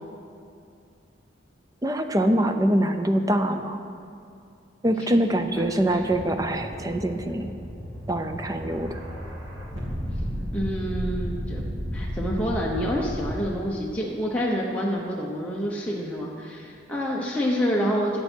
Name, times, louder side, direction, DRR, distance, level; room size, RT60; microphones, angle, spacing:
voice 1, 1.8-3.8 4.8-7.5 8.1-9.0, right 1 dB, 20° right, 7 dB, 0.5 m, -24 dB
sound 1, 5.3-13.3, equal, 75° right, 2.2 m, -33 dB
voice 2, 10.5-11.7 11.9-18.2, equal, 5° left, -4 dB, 0.8 m, -27 dB
14.5 x 8.1 x 4.5 m, 2.4 s
head